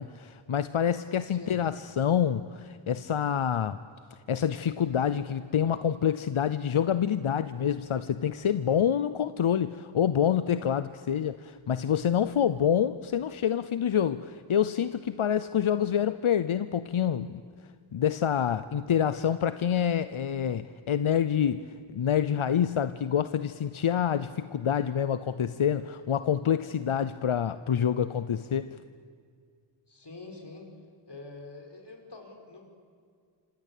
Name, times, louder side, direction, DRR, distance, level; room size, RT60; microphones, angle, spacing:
voice 1, 0.0-3.8 4.3-17.4 17.9-21.6 21.9-28.8, left 8 dB, 90° left, 13 dB, 0.7 m, -27 dB
voice 2, 29.9-30.7 31.1-32.7, left 3 dB, 55° left, 3 dB, 5.1 m, -45 dB
27.0 x 26.5 x 8.4 m, 2.1 s
wide cardioid pair, 70°, 48 cm